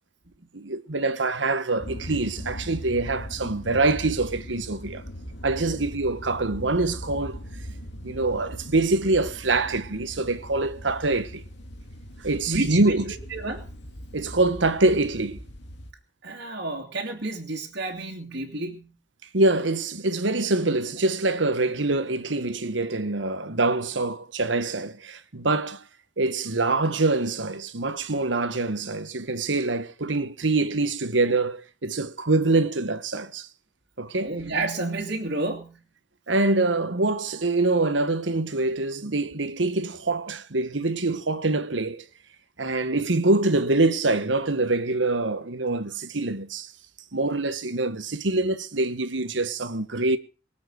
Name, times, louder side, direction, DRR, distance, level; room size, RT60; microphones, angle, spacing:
voice 1, 0.5-5.0 5.4-7.4 8.0-11.4 12.2-13.2 14.1-15.4 19.3-25.8 26.2-33.5 34.0-34.4 36.3-42.1 42.6-46.7 47.1-50.2, right 2 dB, 80° right, 1.4 m, -25 dB
sound 1, 1.8-15.9, equal, 65° left, 3.1 m, -39 dB
voice 2, 12.5-13.0 13.3-13.6 16.2-18.9 34.2-35.8, right 2 dB, 65° right, 2.7 m, -30 dB
23.5 x 7.9 x 6.5 m
head